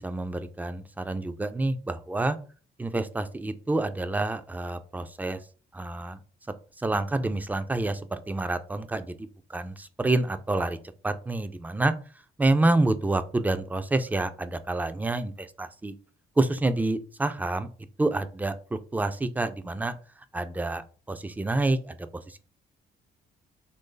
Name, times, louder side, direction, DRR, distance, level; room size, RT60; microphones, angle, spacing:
voice 1, 0.0-2.4 2.8-5.4 5.7-6.2 6.8-10.8 11.0-11.9 12.4-15.9 16.4-17.7 18.0-19.9 20.3-22.0, right 2 dB, 10° right, 11 dB, 0.3 m, -28 dB
3.1 x 2.6 x 3.7 m, 0.39 s
cardioid pair, 90°, 20 cm